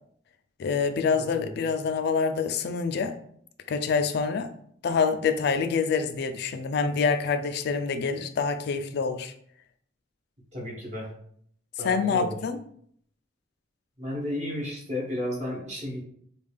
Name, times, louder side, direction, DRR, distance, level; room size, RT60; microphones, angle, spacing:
voice 1, 0.6-3.1 3.7-4.5 4.8-9.3 11.8-12.6, left 5 dB, 60° left, 9 dB, 0.3 m, -26 dB
voice 2, 1.2-1.5 10.5-11.1 11.8-12.4 14.0-16.0, left 1 dB, 40° right, -3 dB, 1.1 m, -33 dB
3.4 x 2.3 x 3.3 m, 0.64 s
head